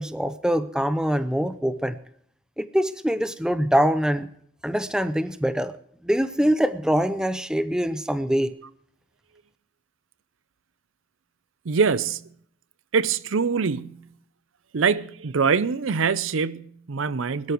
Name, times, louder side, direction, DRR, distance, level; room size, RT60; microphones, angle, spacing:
voice 1, 0.0-2.0 2.6-4.3 4.6-5.7 6.0-8.6, equal, 5° right, 0.5 m, -24 dB
voice 2, 11.7-12.3 12.9-14.1 14.7-17.5, right 5 dB, 75° right, 0.6 m, -24 dB
21.0 x 13.0 x 3.0 m
head